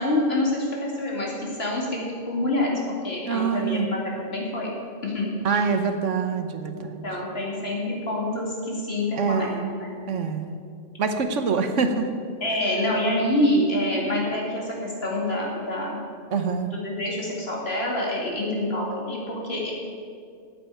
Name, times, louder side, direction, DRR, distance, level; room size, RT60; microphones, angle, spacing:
voice 1, 0.0-2.8 3.0-4.0 4.2-4.7 5.0-5.3 6.7-9.9 12.4-16.0 16.8-19.7, left 1 dB, 50° left, -3 dB, 3.1 m, -26 dB
voice 2, 3.2-3.9 5.4-7.0 9.2-9.6 10.1-10.5 11.0-12.1 16.3-16.7, right 5 dB, 75° right, 7 dB, 1.3 m, -25 dB
10.0 x 9.0 x 9.1 m, 2.2 s
omnidirectional pair, 1.3 m